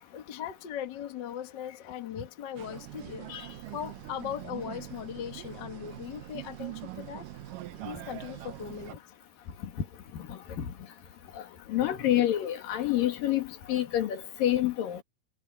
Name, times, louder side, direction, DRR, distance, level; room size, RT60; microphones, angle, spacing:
voice 1, 0.1-3.3 3.7-7.3 7.8-9.0, left 9 dB, 45° left, 1.5 m, -39 dB
sound 1, 2.6-8.9, right 16 dB, 75° right, 2.4 m, -43 dB
voice 2, 10.3-10.7 11.7-15.0, left 12 dB, 80° left, 3.6 m, -28 dB
omnidirectional pair, 4.0 m